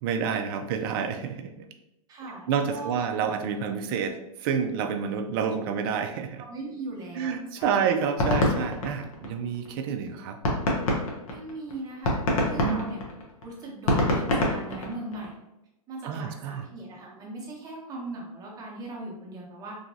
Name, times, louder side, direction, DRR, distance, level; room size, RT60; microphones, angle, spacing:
voice 1, 0.0-1.6 2.5-6.4 7.1-10.4 12.6-12.8 16.0-16.6, right 7 dB, 40° right, 5 dB, 0.4 m, -29 dB
voice 2, 2.1-3.0 6.4-7.9 11.3-13.0 13.4-15.3 15.9-19.8, right 2 dB, 20° right, -2 dB, 0.8 m, -39 dB
sound 1, 7.6-9.7 10.1-10.2 10.4-15.3, left 1 dB, 60° left, 0.9 m, -25 dB
3.0 x 2.5 x 2.7 m, 0.90 s
hypercardioid pair, 135°, 19 cm